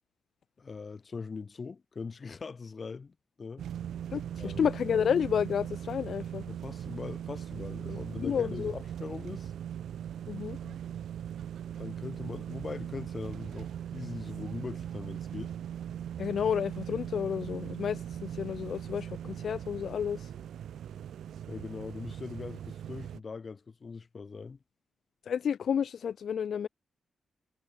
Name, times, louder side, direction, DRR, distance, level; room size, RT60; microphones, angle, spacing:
voice 1, 0.6-3.6 4.4-4.6 6.5-9.5 10.6-10.8 11.8-15.5 21.5-24.6, left 4 dB, 35° left, 2.4 m, -41 dB
sound 1, 3.6-23.2, right 10 dB, 90° right, 3.9 m, -40 dB
voice 2, 4.1-6.5 7.9-8.7 10.3-10.6 16.2-20.3 25.3-26.7, left 8 dB, 60° left, 1.3 m, -31 dB
wide cardioid pair, 145°, 0 cm